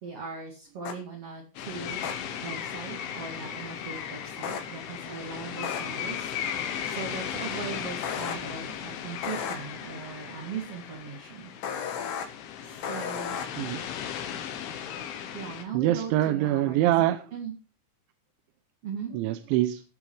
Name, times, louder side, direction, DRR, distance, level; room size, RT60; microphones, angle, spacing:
voice 1, 0.0-2.0 2.4-6.3 6.8-11.5 12.6-13.4 15.3-16.9 17.3-17.5 18.8-19.1, right 6 dB, 40° right, -1 dB, 2.5 m, -39 dB
sound 1, 0.9-1.0 2.0-2.1 4.4-4.6 5.6-5.8 8.0-8.3 9.2-9.6 11.6-12.3 12.8-13.5, left 7 dB, 65° left, 3.6 m, -33 dB
sound 2, 1.6-15.6, left 9 dB, 85° left, 3.9 m, -36 dB
voice 2, 15.7-17.2 19.1-19.8, right 14 dB, 80° right, 9 dB, 3.1 m, -24 dB
16.5 x 7.2 x 4.8 m, 0.35 s
omnidirectional pair, 5.4 m